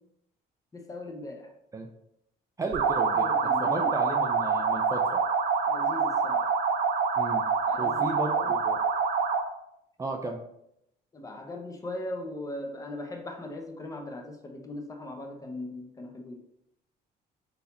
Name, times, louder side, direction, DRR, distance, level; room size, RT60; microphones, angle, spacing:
voice 1, 0.7-1.5 3.2-3.9 5.7-6.5 7.7-8.5 11.1-16.4, left 1 dB, 20° left, 3 dB, 0.7 m, -39 dB
voice 2, 2.6-5.2 7.2-7.4 7.8-8.8 10.0-10.4, right 3 dB, 20° right, 2 dB, 0.4 m, -34 dB
sound 1, 2.7-9.5, right 5 dB, 70° right, 0.6 m, -26 dB
4.0 x 2.8 x 4.0 m, 0.79 s
cardioid pair, 110°, 17 cm